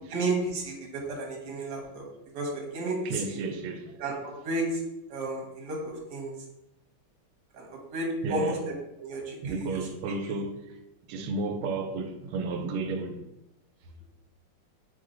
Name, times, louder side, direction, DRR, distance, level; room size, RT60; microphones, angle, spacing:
voice 1, 0.1-2.0 2.3-3.2 4.0-4.8 5.1-6.3 7.5-8.5 9.0-9.8, right 2 dB, 60° right, 1.6 m, -32 dB
voice 2, 3.0-4.0 8.2-8.6 9.4-10.6 11.1-13.3, right 3 dB, 85° right, 1.5 m, -32 dB
3.8 x 3.6 x 3.8 m
omnidirectional pair, 2.3 m